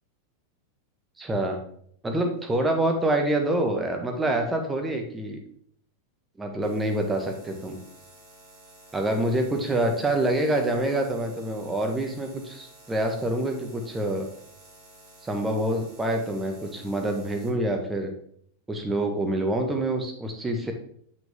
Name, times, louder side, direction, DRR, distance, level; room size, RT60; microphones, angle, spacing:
voice 1, 1.2-1.6 2.0-5.4 6.4-7.8 8.9-14.3 15.2-18.1 18.7-20.7, right 1 dB, 10° right, 3 dB, 1.4 m, -26 dB
sound 1, 6.6-17.5, right 2 dB, 35° right, 3.0 m, -52 dB
8.0 x 6.1 x 3.6 m, 0.65 s
figure-of-eight pair, 90°, 0 cm